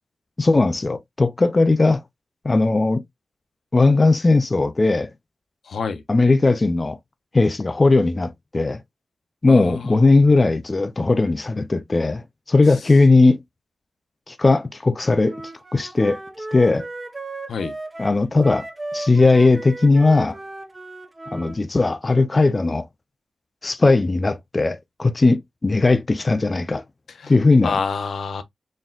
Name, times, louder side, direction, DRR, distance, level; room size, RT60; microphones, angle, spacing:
voice 1, 0.4-2.0 2.4-3.0 3.7-5.1 6.1-7.0 7.3-8.8 9.4-13.4 14.3-15.3 15.7-16.2 16.5-16.9 18.0-18.7 18.9-20.4 21.3-22.9 23.6-26.8 27.3-27.8, left 3 dB, 25° left, 0.4 m, -18 dB
voice 2, 5.7-6.0 9.5-10.0 17.5-17.7 27.2-27.3 27.6-28.4, left 5 dB, 85° left, 0.7 m, -27 dB
Wind instrument woodwind instrument, 15.2-21.6, right 2 dB, 20° right, 0.8 m, -35 dB
4.2 x 3.6 x 2.3 m
wide cardioid pair, 180°, 0 cm